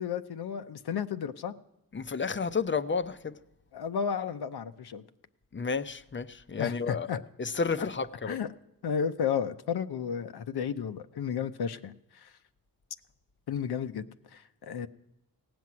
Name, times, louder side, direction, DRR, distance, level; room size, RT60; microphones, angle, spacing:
voice 1, 0.0-1.5 3.7-5.0 6.6-7.2 8.3-8.5 8.8-12.3 13.5-14.0 14.3-14.9, left 7 dB, 75° left, 0.6 m, -33 dB
voice 2, 1.9-3.4 5.5-8.4, left 5 dB, 30° left, 0.5 m, -31 dB
16.5 x 6.0 x 9.5 m
cardioid pair, 65°, 39 cm